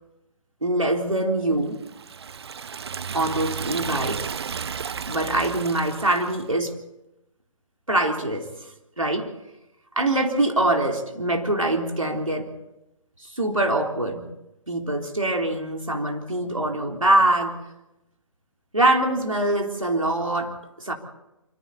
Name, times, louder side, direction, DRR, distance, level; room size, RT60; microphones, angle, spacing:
voice 1, 0.6-1.8 3.1-4.3 5.1-6.8 7.9-8.5 9.0-9.3 10.0-12.5 13.4-14.3 14.7-17.6 18.7-20.9, right 1 dB, 85° right, 2 dB, 3.7 m, -23 dB
Liquid, 1.8-6.4, right 6 dB, 55° right, 0.7 m, -33 dB
26.0 x 25.5 x 4.2 m, 0.91 s
figure-of-eight pair, 135°, 17 cm